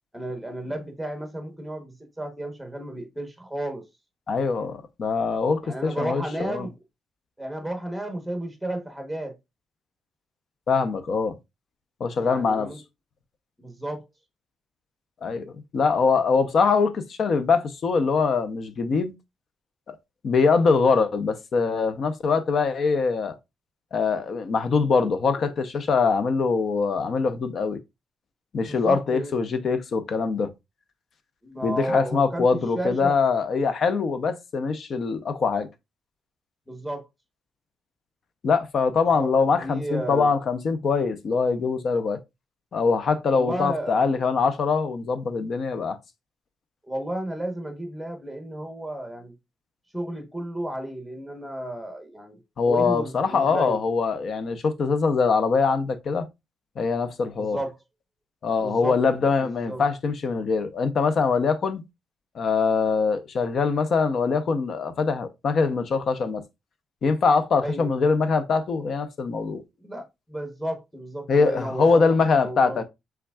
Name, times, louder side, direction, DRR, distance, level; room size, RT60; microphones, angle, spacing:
voice 1, 0.1-3.8 5.6-6.7 7.4-9.4 12.2-12.8 13.6-14.0 28.6-29.4 31.4-33.2 36.7-37.1 39.1-40.3 43.3-44.0 46.8-49.3 49.9-52.4 52.7-53.8 57.4-57.7 58.6-59.0 59.4-59.8 67.6-67.9 69.8-72.8, right 1 dB, ahead, 1.0 m, -33 dB
voice 2, 4.3-6.7 10.7-11.4 12.0-12.7 15.2-19.1 19.9-20.0 20.2-23.4 23.9-27.8 28.5-30.5 31.6-35.7 38.4-42.2 42.7-46.0 52.6-56.3 56.8-57.6 58.4-61.8 62.3-66.4 67.0-69.6 71.3-72.8, left 4 dB, 45° left, 0.7 m, -23 dB
5.8 x 3.6 x 2.3 m
cardioid pair, 150°, 0 cm